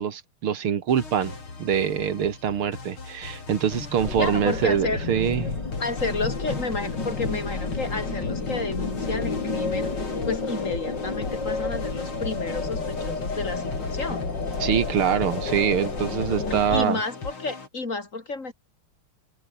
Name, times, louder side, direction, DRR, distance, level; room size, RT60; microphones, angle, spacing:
voice 1, 0.0-5.4 14.6-17.0, right 8 dB, 80° right, 2.6 m, -24 dB
sound 1, 0.9-17.7, left 4 dB, 70° left, 5.3 m, -39 dB
sound 2, 4.0-16.9, left 3 dB, 55° left, 4.6 m, -30 dB
voice 2, 4.2-5.0 5.8-14.2 16.5-18.5, left 3 dB, 35° left, 3.6 m, -31 dB
open air
omnidirectional pair, 2.4 m